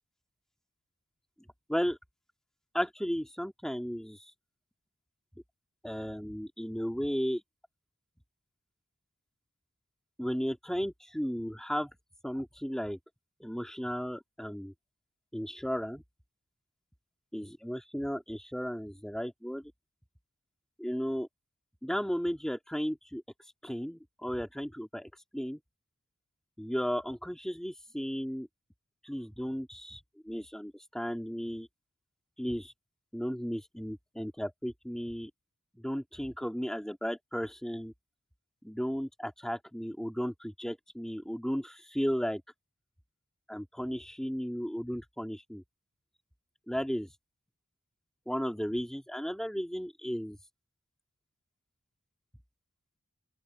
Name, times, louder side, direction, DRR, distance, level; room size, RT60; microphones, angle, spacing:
voice 1, 2.7-4.3 5.8-7.4 10.2-11.9 12.2-13.0 13.4-14.7 15.3-16.0 17.3-19.7 20.8-21.3 21.8-23.2 23.6-25.6 26.6-28.5 29.0-31.7 32.4-32.7 33.1-35.3 35.8-37.9 38.6-42.4 43.5-45.6 46.7-47.1 48.3-50.4, equal, ahead, 1.9 m, -34 dB
open air
head